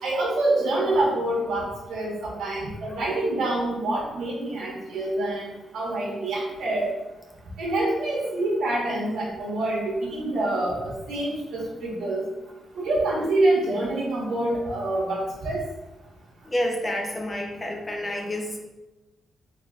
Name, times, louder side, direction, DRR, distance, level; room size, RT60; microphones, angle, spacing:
voice 1, 0.0-5.5 5.7-6.9 7.6-12.2 12.7-15.6, right 2 dB, 75° right, -4 dB, 1.4 m, -26 dB
voice 2, 16.4-18.6, left 1 dB, 20° left, 1 dB, 0.7 m, -29 dB
4.0 x 3.8 x 2.5 m, 1.1 s
wide cardioid pair, 145°, 0 cm